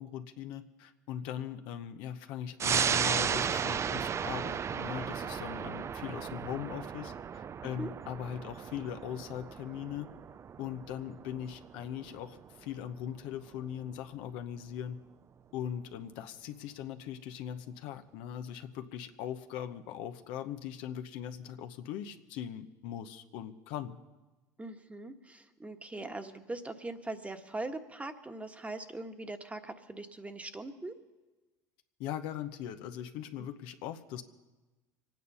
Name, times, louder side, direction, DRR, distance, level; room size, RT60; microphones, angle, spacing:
voice 1, 0.0-10.1 10.6-15.0 15.5-24.0 32.0-34.2, left 10 dB, 70° left, 8 dB, 0.9 m, -40 dB
sound 1, 2.6-13.6 14.0-14.1, right 7 dB, 30° right, 0.4 m, -35 dB
voice 2, 24.6-30.9 33.4-33.5, right 2 dB, 15° right, 7 dB, 1.4 m, -41 dB
25.0 x 9.3 x 5.5 m, 1.2 s
hypercardioid pair, 75°, 9 cm